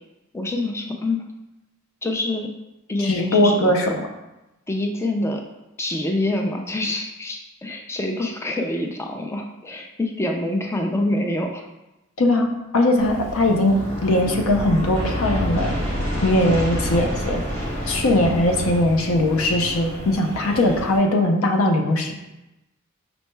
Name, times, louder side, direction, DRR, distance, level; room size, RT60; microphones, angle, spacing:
voice 1, 0.3-1.3 2.0-2.5 2.9-4.0 4.7-5.4 5.8-11.6, left 1 dB, 10° left, 2 dB, 0.3 m, -26 dB
voice 2, 3.0-3.9 12.2-15.7 16.2-17.4 17.9-22.1, left 1 dB, 65° left, 3 dB, 0.5 m, -20 dB
Aircraft, 13.0-21.0, equal, 30° left, 1.1 m, -28 dB
5.2 x 2.2 x 3.1 m, 0.96 s
head